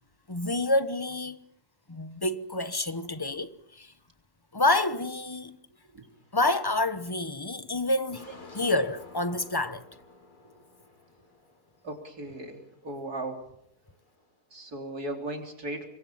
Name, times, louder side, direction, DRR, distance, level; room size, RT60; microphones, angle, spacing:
voice 1, 0.3-1.4 1.9-3.9 4.5-5.6 6.3-8.3 8.5-9.8, left 2 dB, 20° left, 0.9 m, -28 dB
sound 1, 6.0-6.5 6.9-7.5 7.9-13.3 13.5-14.7, left 3 dB, 90° left, 4.6 m, -53 dB
voice 2, 11.8-13.5 14.5-15.9, right 1 dB, 80° right, 4.3 m, -37 dB
26.0 x 22.5 x 5.8 m
omnidirectional pair, 1.6 m